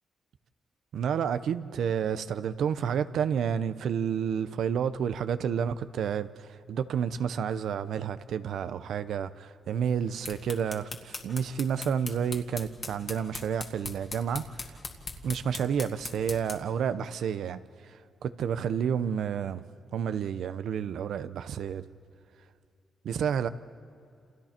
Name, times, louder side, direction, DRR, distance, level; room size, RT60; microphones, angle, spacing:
voice 1, 0.9-14.7 15.2-19.6 19.9-21.8 23.0-23.5, right 7 dB, 80° right, 0.8 m, -30 dB
sound 1, 10.0-16.7, left 3 dB, 35° left, 2.1 m, -41 dB
29.5 x 28.5 x 4.5 m
cardioid pair, 115°, 0 cm